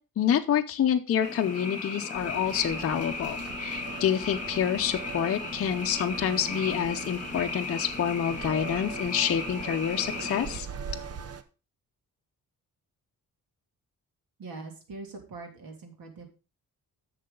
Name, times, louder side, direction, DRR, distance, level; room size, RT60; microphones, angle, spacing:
voice 1, 0.2-10.7, left 9 dB, 40° left, 4 dB, 0.6 m, -27 dB
Frog, 1.2-10.6, left 3 dB, 20° left, 2.1 m, -36 dB
sound 1, 2.1-11.4, right 6 dB, 45° right, 0.7 m, -41 dB
voice 2, 14.4-16.3, right 3 dB, 75° right, 3 dB, 2.8 m, -42 dB
10.5 x 6.8 x 3.8 m, 0.33 s
wide cardioid pair, 175°, 35 cm